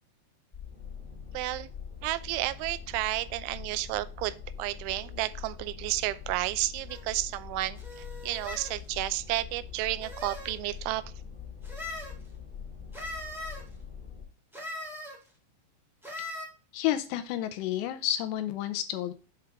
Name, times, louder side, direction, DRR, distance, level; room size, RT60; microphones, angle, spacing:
sound 1, 0.5-14.2, left 7 dB, 20° left, 1.4 m, -43 dB
voice 1, 1.3-1.7 2.0-11.0, right 16 dB, 90° right, 15 dB, 3.0 m, -32 dB
sound 2, 6.9-7.0 7.7-8.7 9.7-10.6 11.6-12.1 12.9-13.6 14.5-15.2 16.0-16.5, left 1 dB, ahead, 1.1 m, -40 dB
voice 2, 16.7-19.1, left 12 dB, 80° left, 9 dB, 2.7 m, -30 dB
7.9 x 4.9 x 4.7 m, 0.35 s
omnidirectional pair, 5.3 m